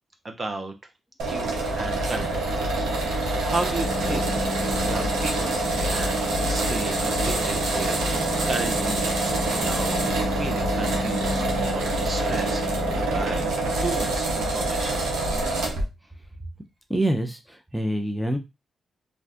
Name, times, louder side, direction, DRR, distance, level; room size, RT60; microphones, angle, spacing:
voice 1, 0.2-0.7 1.2-4.3 4.8-9.9 10.3-13.5 13.8-15.0, right 3 dB, 40° right, 5 dB, 0.7 m, -34 dB
sound 1, 1.2-15.9, right 2 dB, 85° right, 0.8 m, -26 dB
sound 2, 3.8-13.5, left 2 dB, 40° left, 0.7 m, -33 dB
voice 2, 16.9-18.4, right 1 dB, 5° right, 4 dB, 0.6 m, -26 dB
2.5 x 2.4 x 3.4 m, 0.23 s
cardioid pair, 60°, 0 cm